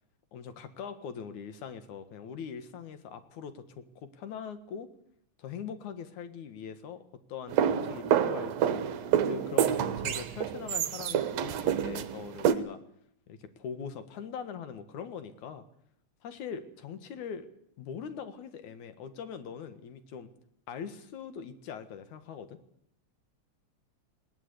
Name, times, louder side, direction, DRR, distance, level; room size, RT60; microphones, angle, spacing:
voice 1, 0.3-4.9 5.4-7.0 7.3-8.8 9.2-12.8 13.3-15.6 16.2-17.5 17.8-20.3 20.7-22.6, left 7 dB, 80° left, 10 dB, 3.0 m, -42 dB
sound 1, 7.5-12.5, right 9 dB, 70° right, 2.2 m, -28 dB
19.5 x 18.5 x 8.4 m, 0.73 s
omnidirectional pair, 3.4 m